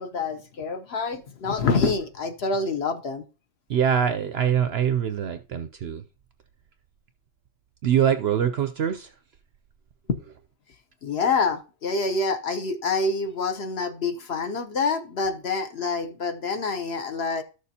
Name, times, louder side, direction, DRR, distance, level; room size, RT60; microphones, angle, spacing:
voice 1, 0.0-3.2 11.0-17.4, left 4 dB, 55° left, 0.9 m, -26 dB
voice 2, 3.7-6.0 7.8-9.1, right 9 dB, 65° right, 0.7 m, -23 dB
12.5 x 6.7 x 2.8 m
omnidirectional pair, 1.5 m